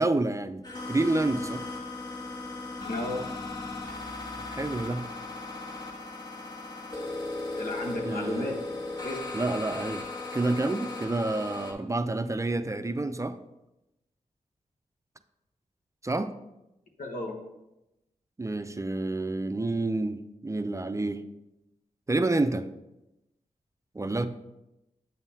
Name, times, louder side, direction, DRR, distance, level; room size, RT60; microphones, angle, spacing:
voice 1, 0.0-1.6 4.5-5.1 8.0-8.5 9.3-10.0 10.3-13.4 16.0-16.3 18.4-21.2 22.1-22.7 23.9-24.3, right 2 dB, 20° right, 9 dB, 0.4 m, -28 dB
sound 1, 0.6-11.7, left 2 dB, 30° left, 1.6 m, -37 dB
voice 2, 2.8-3.3 7.6-8.6 9.0-9.2 17.0-17.4, left 2 dB, 85° left, 1 dB, 1.1 m, -33 dB
8.0 x 5.5 x 2.8 m, 0.93 s
cardioid pair, 50°, 14 cm